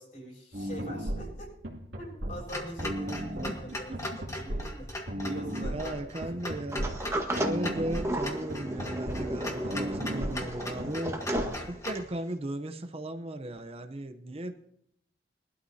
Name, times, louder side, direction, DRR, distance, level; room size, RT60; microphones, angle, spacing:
voice 1, 0.0-1.5 2.0-5.9 6.2-6.4, equal, 45° left, -2 dB, 6.6 m, -43 dB
sound 1, 0.5-11.6, equal, 75° right, 2.6 m, -36 dB
Clock, 2.5-12.1, left 1 dB, 15° left, 1.7 m, -39 dB
voice 2, 5.6-11.2 11.7-14.5, right 1 dB, 35° right, 7 dB, 0.7 m, -37 dB
Sliding door, 6.7-12.2, right 1 dB, 15° right, 1.5 m, -34 dB
22.0 x 12.5 x 2.8 m, 0.72 s
head